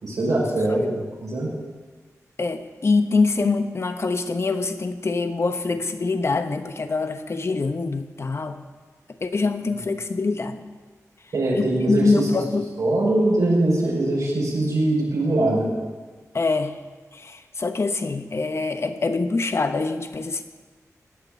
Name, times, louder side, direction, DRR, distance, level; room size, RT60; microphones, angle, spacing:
voice 1, 0.0-1.5 11.3-12.3 12.8-15.7, right 2 dB, 85° right, -3 dB, 6.1 m, -22 dB
voice 2, 2.4-8.6 9.2-10.6 11.5-12.7 16.3-16.7 17.1-20.4, left 3 dB, 50° left, 8 dB, 1.1 m, -24 dB
17.0 x 6.8 x 10.0 m, 1.4 s
wide cardioid pair, 90°, 6 cm